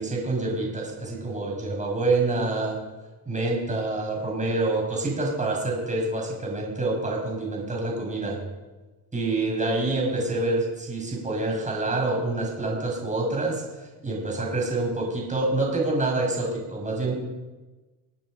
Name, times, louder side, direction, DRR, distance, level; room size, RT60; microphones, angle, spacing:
voice 1, 0.0-2.8 3.3-8.4 9.1-17.5, right 2 dB, 15° right, -1 dB, 5.8 m, -27 dB
25.5 x 8.9 x 5.2 m, 1.2 s
cardioid pair, 110°, 42 cm